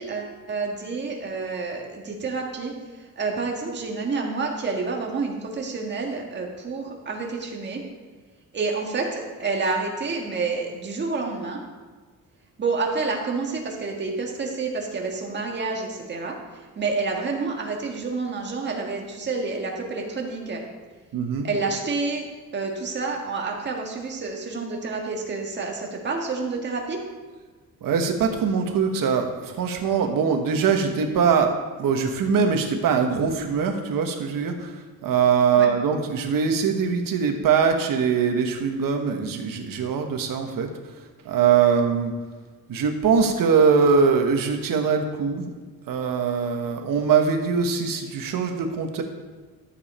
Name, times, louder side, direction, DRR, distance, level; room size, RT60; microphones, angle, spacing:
voice 1, 0.0-7.8 8.5-11.6 12.6-20.6 21.4-22.2 22.5-27.0 35.5-35.7, right 4 dB, 30° right, 0 dB, 1.7 m, -29 dB
voice 2, 21.1-21.5 27.8-40.7 41.0-42.1 42.7-45.5 45.9-49.0, right 6 dB, 70° right, 4 dB, 1.4 m, -22 dB
13.0 x 7.1 x 4.4 m, 1.4 s
cardioid pair, 170°, 34 cm